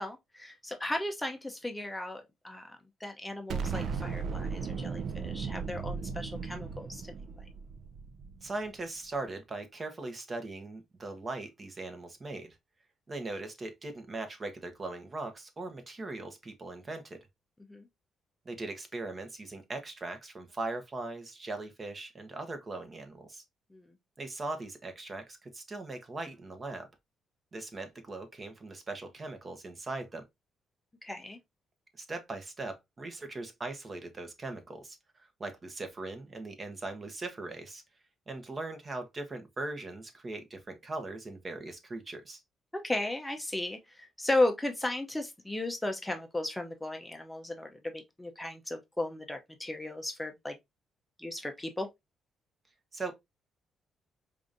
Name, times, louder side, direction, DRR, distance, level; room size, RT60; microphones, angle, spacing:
voice 1, 0.0-7.5 17.7-17.9 23.7-23.9 31.0-31.4 42.7-50.6 51.2-51.9, left 2 dB, 10° left, 0.6 m, -35 dB
Explosion, 3.5-8.7, right 5 dB, 65° right, 0.5 m, -36 dB
voice 2, 8.4-12.5 13.1-17.2 18.4-23.4 24.2-26.9 27.5-30.2 32.0-37.8 38.3-42.4 52.9-53.1, right 2 dB, 35° right, 1.0 m, -40 dB
4.8 x 2.5 x 2.5 m
cardioid pair, 90°, 0 cm